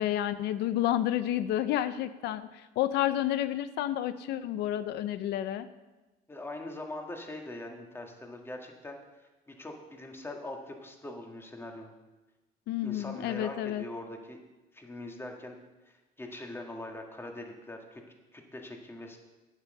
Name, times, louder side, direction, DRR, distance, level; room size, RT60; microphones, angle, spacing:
voice 1, 0.0-5.7 12.7-13.8, left 12 dB, 80° left, 12 dB, 0.5 m, -30 dB
voice 2, 6.3-9.0 9.5-11.9 12.8-14.4 14.7-15.6 15.9-18.0 18.3-19.2, left 1 dB, 15° left, 2 dB, 1.7 m, -42 dB
9.1 x 8.1 x 6.5 m, 1.1 s
cardioid pair, 110°, 17 cm